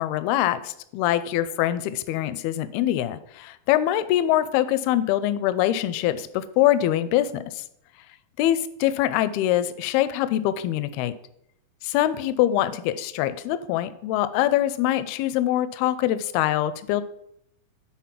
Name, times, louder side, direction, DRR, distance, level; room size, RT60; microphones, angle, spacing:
voice 1, 0.0-7.6 8.4-11.1 11.8-17.0, left 13 dB, 85° left, 14 dB, 2.4 m, -24 dB
9.2 x 4.1 x 5.8 m, 0.75 s
omnidirectional pair, 4.4 m